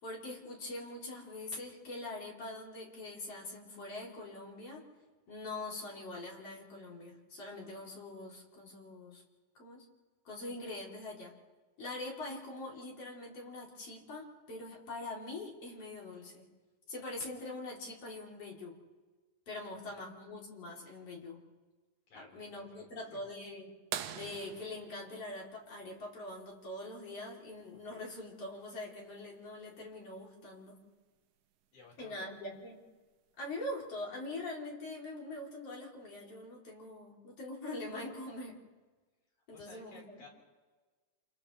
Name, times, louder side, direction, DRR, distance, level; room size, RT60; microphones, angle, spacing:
voice 1, 0.0-4.8 5.3-9.2 9.6-9.8 10.3-11.3 11.8-16.5 16.9-18.8 19.5-21.4 22.1-23.7 24.1-30.8 32.0-32.8 33.4-38.6 39.5-40.2, left 2 dB, 50° left, -3 dB, 4.1 m, -43 dB
voice 2, 19.7-20.0 22.1-23.3 31.7-32.3 39.5-40.3, left 4 dB, 75° left, -2 dB, 5.9 m, -57 dB
sound 1, 23.9-26.4 28.3-28.4 30.6-30.7 32.4-32.7 33.5-33.6, right 9 dB, 75° right, 2.2 m, -43 dB
29.0 x 28.0 x 3.2 m, 1.3 s
omnidirectional pair, 3.5 m